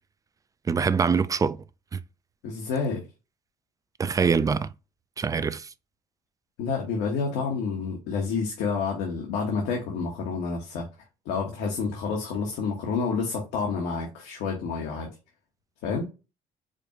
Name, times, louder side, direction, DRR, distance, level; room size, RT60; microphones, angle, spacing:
voice 1, 0.7-1.6 1.9-2.0 4.0-4.7 5.2-5.7, right 5 dB, 20° right, 0.3 m, -24 dB
voice 2, 2.4-3.0 6.6-10.9 11.2-15.1 15.8-16.1, left 5 dB, 85° left, 1.1 m, -29 dB
5.0 x 2.3 x 2.9 m
cardioid pair, 95°, 17 cm